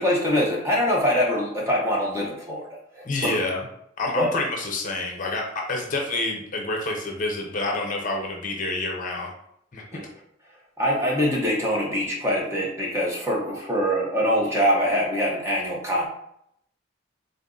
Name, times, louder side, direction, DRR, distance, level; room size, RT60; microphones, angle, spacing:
voice 1, 0.0-3.4 4.1-4.3 9.9-10.0 10.8-16.1, equal, 15° right, -3 dB, 0.8 m, -24 dB
voice 2, 3.0-3.6 4.0-9.3 9.7-9.8, left 2 dB, 40° left, 0 dB, 0.7 m, -28 dB
3.8 x 2.7 x 3.7 m, 0.74 s
head